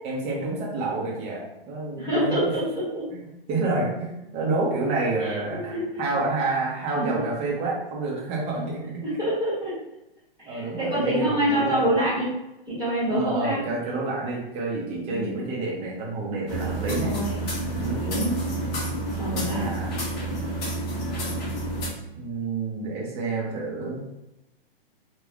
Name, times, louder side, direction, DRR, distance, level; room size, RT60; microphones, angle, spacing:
voice 1, 0.0-2.3 3.1-9.0 10.5-11.9 13.1-17.1 17.7-18.0 19.4-20.0 22.2-24.0, right 3 dB, 20° right, -3 dB, 0.6 m, -29 dB
voice 2, 2.0-3.0 5.2-5.8 7.0-7.2 9.0-9.7 10.4-12.3 12.7-13.6 15.1-15.3 17.0-17.3 18.0-18.4 19.2-19.7, equal, 5° left, -12 dB, 1.2 m, -26 dB
sound 1, 16.5-21.9, right 2 dB, 40° left, 1.2 m, -29 dB
3.3 x 2.2 x 2.4 m, 0.92 s
hypercardioid pair, 140°, 29 cm